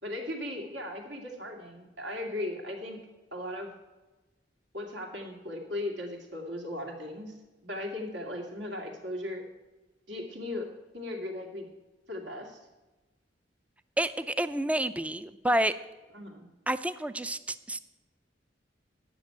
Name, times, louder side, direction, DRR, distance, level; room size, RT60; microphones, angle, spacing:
voice 1, 0.0-3.0 3.3-3.7 4.7-7.3 7.6-9.5 10.1-10.7 10.9-11.7 12.1-12.6 16.1-16.5, left 1 dB, 75° right, 1 dB, 2.2 m, -37 dB
voice 2, 14.0-15.7 16.7-17.8, right 1 dB, 10° right, 14 dB, 0.4 m, -29 dB
10.0 x 6.1 x 8.6 m, 1.1 s
head